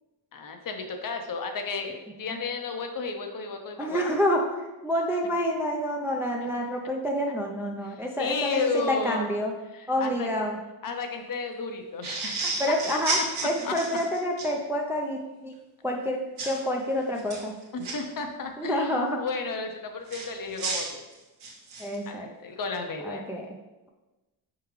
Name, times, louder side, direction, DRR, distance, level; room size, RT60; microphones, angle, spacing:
voice 1, 0.3-4.0 6.4-6.5 7.8-9.3 9.7-10.3 10.8-12.6 12.9-13.0 13.6-13.7 17.7-21.0 22.1-23.2, left 4 dB, 45° left, 5 dB, 0.7 m, -33 dB
voice 2, 3.8-4.6 4.8-9.6 9.9-10.6 12.6-13.2 13.4-15.5 15.8-17.5 18.6-19.2 21.8-22.3 23.0-23.6, equal, 5° right, 0 dB, 0.4 m, -28 dB
sound 1, 12.0-14.5 16.4-16.6 17.2-17.9 20.1-22.0, right 3 dB, 80° right, 1.3 m, -32 dB
4.6 x 3.7 x 3.1 m, 1.1 s
cardioid pair, 80°, 48 cm